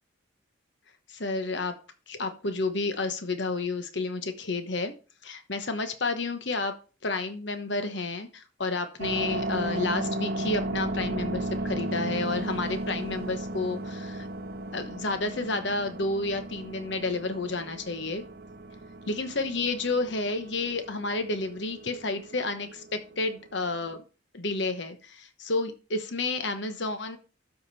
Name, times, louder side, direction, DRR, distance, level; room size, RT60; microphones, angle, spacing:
voice 1, 1.1-1.8 2.1-4.9 5.2-6.7 7.0-14.3 14.7-18.2 19.1-24.0 24.3-27.2, left 3 dB, 60° left, 8 dB, 1.1 m, -30 dB
sound 1, 9.0-24.0, right 1 dB, 45° right, 0.7 m, -35 dB
12.5 x 5.1 x 4.2 m, 0.34 s
head